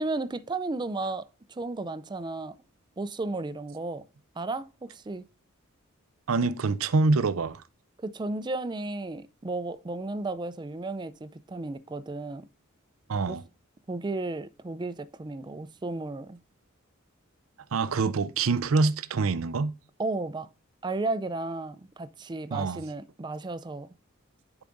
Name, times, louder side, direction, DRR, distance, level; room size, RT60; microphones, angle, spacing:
voice 1, 0.0-2.6 3.0-4.0 4.4-5.3 8.0-12.5 13.3-13.4 13.9-16.4 20.0-20.5 20.8-23.9, right 2 dB, 20° right, 0.4 m, -34 dB
voice 2, 6.3-7.6 13.1-13.4 17.7-19.7 22.5-22.9, right 3 dB, 80° right, 0.5 m, -25 dB
10.5 x 4.8 x 2.6 m
head